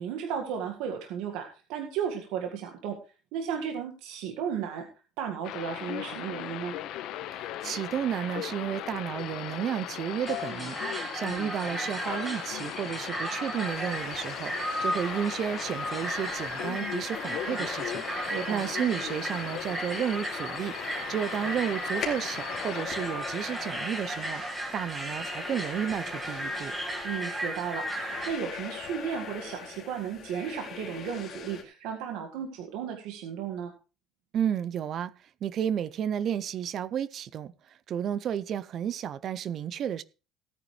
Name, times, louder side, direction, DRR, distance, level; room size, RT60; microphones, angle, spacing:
voice 1, 0.0-3.0 3.3-4.9 5.2-6.7 18.3-18.7 27.0-33.7, right 8 dB, 80° right, 1.8 m, -34 dB
sound 1, 5.4-22.9, left 12 dB, 60° left, 1.1 m, -38 dB
voice 2, 7.3-10.8 11.1-20.7 21.1-24.4 24.7-26.7 34.3-35.1 35.4-40.0, right 9 dB, 40° right, 0.5 m, -32 dB
sound 2, 10.2-28.3, right 1 dB, 15° right, 1.8 m, -35 dB
sound 3, 13.6-31.6, left 7 dB, 35° left, 2.6 m, -42 dB
17.0 x 9.3 x 3.3 m
cardioid pair, 170°, 0 cm